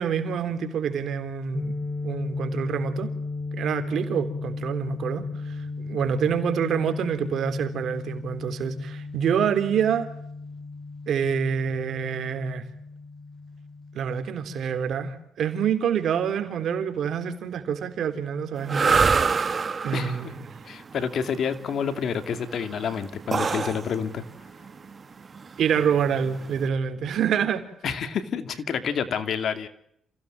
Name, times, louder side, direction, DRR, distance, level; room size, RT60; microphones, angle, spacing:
voice 1, 0.0-1.7 2.0-3.1 3.5-10.1 11.1-12.6 13.9-19.5 19.8-20.6 25.6-27.6, right 7 dB, 65° right, 8 dB, 3.5 m, -27 dB
sound 1, 1.5-15.0, left 3 dB, 20° left, 2.2 m, -35 dB
sound 2, 18.6-26.7, right 5 dB, 40° right, 1.3 m, -26 dB
voice 2, 20.6-24.2 27.8-29.7, left 7 dB, 60° left, 9 dB, 2.5 m, -28 dB
28.5 x 16.5 x 7.6 m, 0.76 s
cardioid pair, 90°, 0 cm